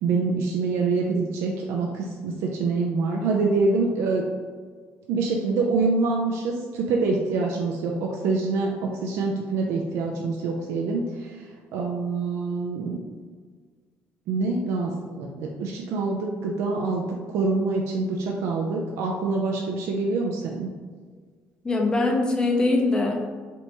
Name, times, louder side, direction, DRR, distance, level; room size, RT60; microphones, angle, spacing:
voice 1, 0.0-4.2 5.1-11.3 11.7-13.0 14.3-20.7, right 3 dB, 90° right, 0 dB, 0.4 m, -25 dB
voice 2, 21.6-23.3, left 2 dB, 20° left, 1 dB, 0.5 m, -22 dB
3.3 x 2.9 x 2.7 m, 1.6 s
cardioid pair, 130°, 4 cm